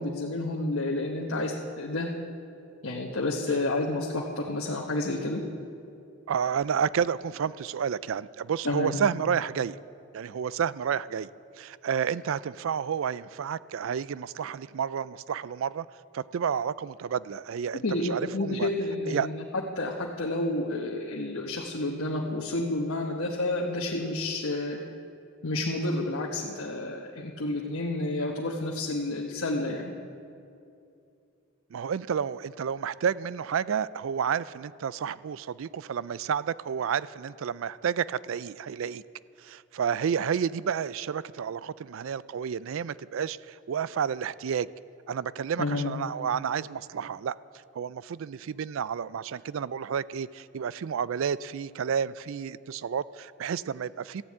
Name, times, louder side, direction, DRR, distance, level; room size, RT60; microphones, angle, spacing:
voice 1, 0.0-2.1 2.8-5.4 8.6-9.0 17.8-24.8 25.4-29.9 45.6-46.0, left 2 dB, 80° left, -2 dB, 1.2 m, -30 dB
voice 2, 6.3-9.8 10.1-11.3 11.6-15.9 16.1-18.7 19.1-19.3 31.7-39.0 39.4-44.7 45.1-47.4 47.7-54.2, right 7 dB, 70° right, 18 dB, 0.3 m, -30 dB
14.0 x 11.0 x 8.7 m, 2.6 s
head